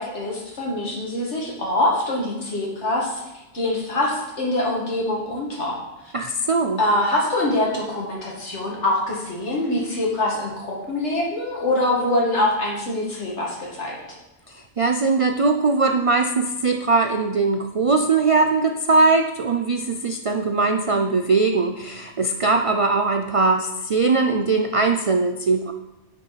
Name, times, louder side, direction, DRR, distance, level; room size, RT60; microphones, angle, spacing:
voice 1, 0.0-3.2 3.5-5.8 6.8-14.0, left 1 dB, 75° left, -3 dB, 2.2 m, -24 dB
voice 2, 6.1-6.8 14.5-25.7, right 3 dB, 55° right, 4 dB, 0.3 m, -20 dB
10.0 x 5.4 x 4.1 m, 0.96 s
omnidirectional pair, 1.2 m